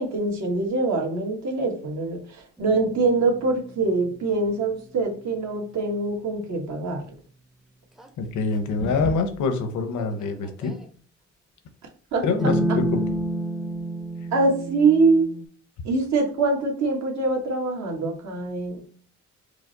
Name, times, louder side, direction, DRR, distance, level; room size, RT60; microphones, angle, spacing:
voice 1, 0.0-2.2 2.6-7.0 12.1-12.2 14.3-15.3 15.8-18.8, right 3 dB, 65° right, 1.3 m, -23 dB
sound 1, 2.6-4.9 8.0-8.1 8.8-9.3 10.0-10.8 12.4-15.5, right 1 dB, ahead, 0.5 m, -30 dB
voice 2, 8.2-10.8 12.2-13.1, left 4 dB, 75° left, 0.8 m, -25 dB
4.9 x 2.0 x 3.9 m
cardioid pair, 90°, 30 cm